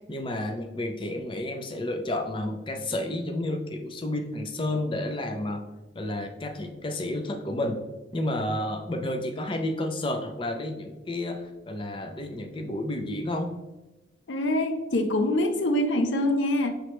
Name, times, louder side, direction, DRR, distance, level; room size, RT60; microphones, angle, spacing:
voice 1, 0.1-5.6 5.9-7.8 8.1-13.5, left 1 dB, 30° left, 4 dB, 0.5 m, -31 dB
voice 2, 14.3-16.7, left 1 dB, 90° left, 8 dB, 0.5 m, -24 dB
5.0 x 3.2 x 3.0 m, 1.1 s
head